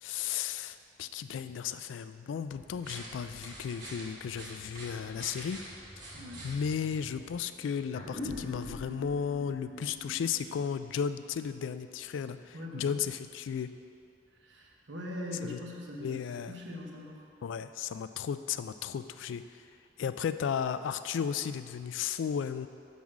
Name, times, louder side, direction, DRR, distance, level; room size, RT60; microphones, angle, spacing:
voice 1, 0.0-5.6 6.4-13.7 15.4-15.6 16.0-16.5 17.4-19.4 20.0-22.7, left 7 dB, 85° left, 12 dB, 0.3 m, -34 dB
sound 1, 2.5-7.4, right 1 dB, 50° right, 1.9 m, -47 dB
voice 2, 6.1-6.5 12.5-13.0 14.4-17.2, left 1 dB, 80° right, -1 dB, 1.1 m, -42 dB
sound 2, 7.9-12.8, left 1 dB, 45° left, 1.0 m, -44 dB
6.3 x 5.5 x 5.9 m, 2.5 s
head